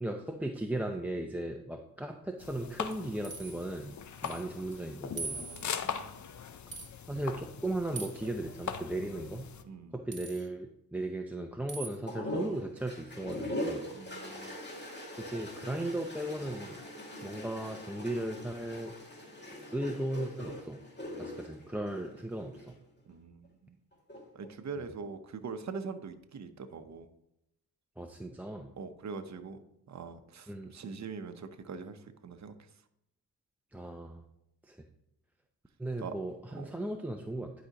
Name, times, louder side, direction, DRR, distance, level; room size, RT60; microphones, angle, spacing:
voice 1, 0.0-5.4 7.1-9.5 9.9-13.9 15.2-16.8 17.2-18.9 19.7-20.8 21.2-22.8 28.0-28.7 30.5-30.7 33.7-34.2 34.7-34.8 35.8-37.5, right 1 dB, 5° right, 4 dB, 0.5 m, -36 dB
sound 1, 2.4-9.6, left 7 dB, 50° left, 0.6 m, -41 dB
sound 2, 2.9-3.6 4.2-4.4 4.7-4.8 5.2-5.8 6.7-6.9 8.0-8.3 10.1-10.5 11.7-12.0, right 4 dB, 30° right, 1.3 m, -42 dB
voice 2, 5.3-6.2 9.0-9.1 9.6-9.9 13.9-14.6 23.1-23.8 24.3-27.1 28.8-29.6 29.9-32.5 36.0-36.1 36.5-36.7, right 5 dB, 45° right, 8 dB, 0.8 m, -43 dB
sound 3, 12.1-22.7 23.9-24.5, left 1 dB, 25° left, 2.2 m, -41 dB
10.5 x 5.1 x 2.9 m, 0.81 s
cardioid pair, 70°, 38 cm